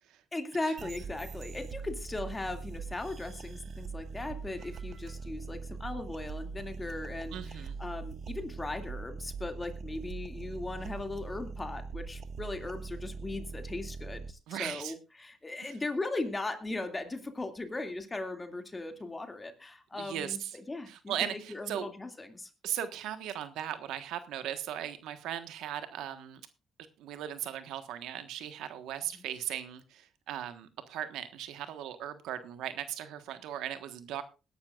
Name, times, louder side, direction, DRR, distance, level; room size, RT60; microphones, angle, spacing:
voice 1, 0.3-22.5 29.1-29.2, left 2 dB, 20° left, 6 dB, 2.3 m, -38 dB
sound 1, 0.8-14.3, right 4 dB, 60° right, 0.7 m, -42 dB
voice 2, 7.3-7.8 14.5-14.9 15.6-15.7 19.9-20.6 20.9-21.9 22.6-26.4 27.0-34.2, right 10 dB, 90° right, 10 dB, 1.3 m, -38 dB
21.0 x 11.5 x 2.4 m, 0.30 s
cardioid pair, 90°, 0 cm